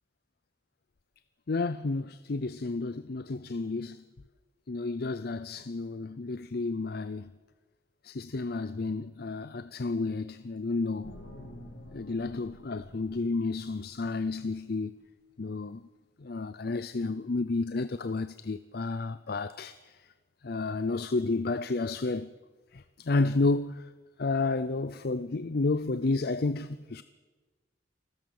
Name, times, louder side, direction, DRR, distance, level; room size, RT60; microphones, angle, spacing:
voice 1, 1.5-4.0 4.7-7.3 8.0-11.2 11.9-14.9 15.4-15.8 16.2-20.0 20.4-22.3 22.7-23.9 24.2-27.0, left 3 dB, 55° left, 0.6 m, -31 dB
sound 1, 11.0-14.4, left 1 dB, 80° left, 2.7 m, -49 dB
28.0 x 14.0 x 7.2 m
head